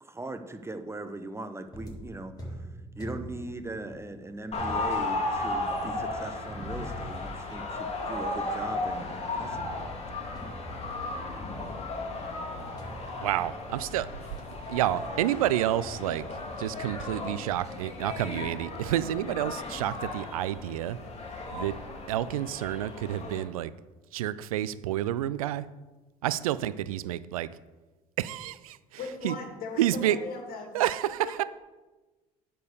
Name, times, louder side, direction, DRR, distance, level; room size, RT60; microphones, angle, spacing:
voice 1, 0.0-2.7 3.0-9.6, right 2 dB, 15° right, 9 dB, 1.0 m, -40 dB
sound 1, 1.7-9.6 10.3-11.3 12.8-14.0 14.4-14.7, right 1 dB, 20° left, 3.5 m, -45 dB
sound 2, 4.5-23.4, left 2 dB, 35° left, 2.6 m, -35 dB
voice 2, 13.2-14.1 14.7-16.3 16.6-21.0 21.5-21.8 22.1-23.7 24.1-25.7 26.2-27.5 28.2-28.8 29.2-29.3 29.8-30.2 30.7-31.4, right 13 dB, 85° right, 16 dB, 0.4 m, -29 dB
voice 3, 29.0-30.8, left 4 dB, 55° left, 2 dB, 2.4 m, -38 dB
10.0 x 4.6 x 6.6 m, 1.2 s
hypercardioid pair, 60°, 18 cm